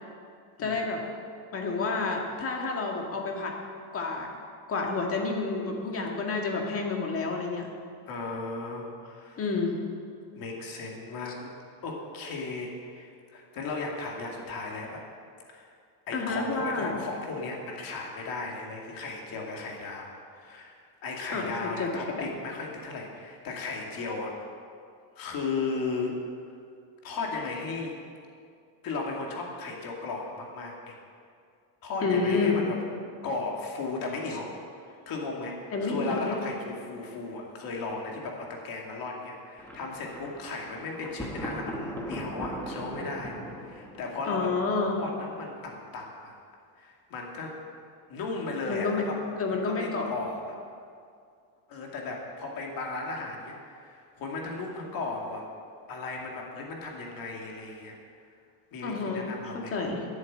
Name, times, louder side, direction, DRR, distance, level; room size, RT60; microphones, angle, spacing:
voice 1, 0.6-1.0 1.5-3.5 3.9-4.3 4.7-7.7 9.4-9.8 16.1-17.0 21.3-22.3 32.0-32.6 35.7-36.4 44.2-45.0 48.7-49.0 49.4-50.1 58.8-60.1, left 4 dB, 30° left, 1 dB, 1.9 m, -29 dB
voice 2, 8.1-9.4 10.3-11.5 11.8-15.0 15.5-15.7 16.1-24.3 25.2-26.2 27.0-28.0 28.8-30.9 31.8-32.8 33.2-34.5 34.8-44.5 45.0-46.4 46.8-47.6 48.1-49.2 49.5-50.6 51.7-55.5 55.9-58.0 58.7-59.7, left 3 dB, 45° left, 0 dB, 2.4 m, -36 dB
Thunder, 39.6-45.4, equal, 5° left, 1.4 m, -40 dB
10.0 x 8.1 x 8.8 m, 2.3 s
cardioid pair, 145°, 48 cm